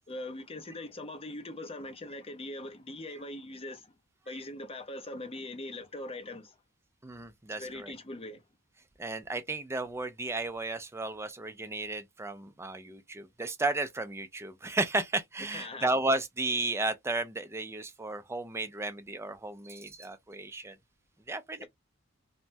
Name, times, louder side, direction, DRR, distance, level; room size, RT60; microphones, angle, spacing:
voice 1, 0.1-4.0 4.3-6.6 7.5-8.4 15.4-15.9 21.6-21.7, left 1 dB, 30° left, 0.6 m, -41 dB
voice 2, 7.0-7.9 9.0-20.8 21.3-21.7, right 2 dB, 10° right, 0.4 m, -33 dB
3.3 x 2.1 x 2.6 m
head